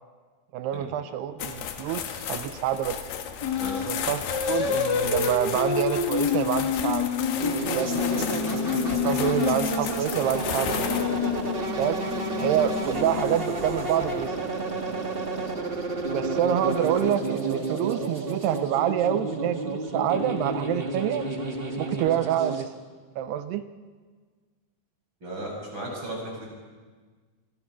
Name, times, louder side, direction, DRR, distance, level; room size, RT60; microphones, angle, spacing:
voice 1, 0.5-3.0 3.9-7.1 7.8-8.3 8.9-10.9 11.8-12.0 12.4-14.4 16.1-21.2 21.8-22.7 23.2-23.6, right 10 dB, 80° right, 11 dB, 2.8 m, -27 dB
sound 1, 1.4-14.3, left 8 dB, 80° left, 3.5 m, -35 dB
sound 2, 3.4-3.9 4.3-9.9 10.6-13.6, left 7 dB, 55° left, 1.2 m, -28 dB
voice 2, 3.5-3.9 25.2-26.4, right 1 dB, 30° right, -1 dB, 6.8 m, -35 dB
sound 3, 7.4-22.7, right 2 dB, 50° right, 0.6 m, -31 dB
27.0 x 22.5 x 6.1 m, 1.5 s
omnidirectional pair, 4.7 m